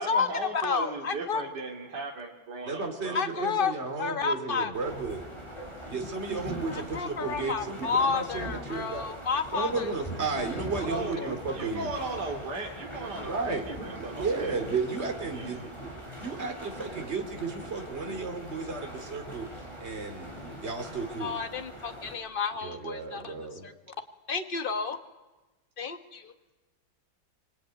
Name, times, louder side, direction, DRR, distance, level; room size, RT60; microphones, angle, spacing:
voice 1, 0.0-3.4 10.8-14.7 15.3-15.6, right 2 dB, 55° right, 0 dB, 3.2 m, -37 dB
voice 2, 0.6-1.4 3.1-3.7 4.0-4.7 6.7-9.9 10.3-10.6 11.2-11.3 21.2-23.3 23.6-23.7 24.3-25.0 25.8-26.3, left 5 dB, 30° left, 7 dB, 1.5 m, -31 dB
voice 3, 2.7-5.2 5.9-9.0 9.5-11.9 13.2-13.6 14.0-15.9 16.2-19.5 19.8-21.4 22.6-23.7, right 4 dB, 30° right, 5 dB, 2.9 m, -33 dB
sound 1, 4.7-22.2, equal, 15° left, 7.5 m, -42 dB
25.5 x 24.0 x 9.4 m, 1.1 s
omnidirectional pair, 2.2 m